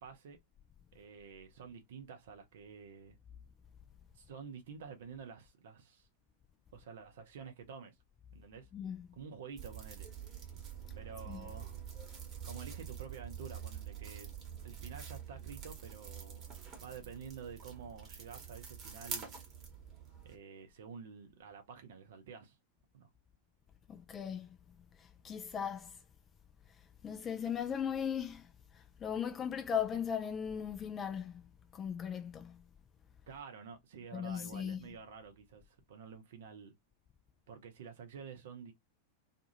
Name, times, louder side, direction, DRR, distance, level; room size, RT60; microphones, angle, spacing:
voice 1, 0.0-0.4 0.9-3.2 4.1-6.1 6.7-7.9 8.3-8.7 9.1-10.1 10.9-11.8 12.4-14.3 14.6-16.4 16.8-19.3 20.2-22.6 22.9-23.1 33.3-36.7 37.5-38.7, right 6 dB, 60° right, 0.6 m, -49 dB
voice 2, 8.7-9.1 11.3-11.5 23.9-24.6 25.0-26.0 27.0-31.4 31.7-32.6 34.1-34.9, left 8 dB, 25° left, 0.3 m, -38 dB
sound 1, 9.6-20.3, right 8 dB, 30° right, 1.1 m, -46 dB
2.5 x 2.3 x 2.8 m
figure-of-eight pair, 90°, 0 cm